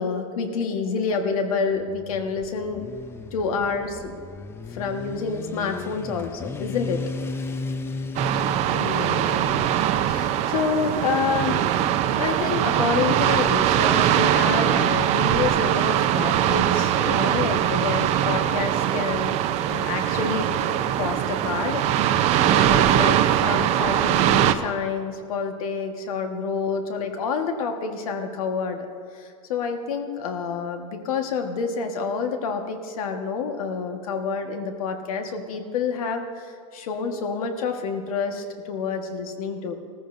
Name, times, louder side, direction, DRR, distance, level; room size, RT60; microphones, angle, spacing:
voice 1, 0.0-2.9 3.3-4.2 4.7-7.1 8.7-11.6 12.2-19.4 19.7-20.5 21.0-28.9 29.1-39.7, left 5 dB, 80° left, 5 dB, 1.5 m, -28 dB
Motorcycle, 1.7-13.4, left 3 dB, 15° left, 0.4 m, -37 dB
sound 1, 8.1-24.5, right 11 dB, 40° right, 0.6 m, -22 dB
19.0 x 14.0 x 2.7 m, 2.3 s
supercardioid pair, 140°, 18 cm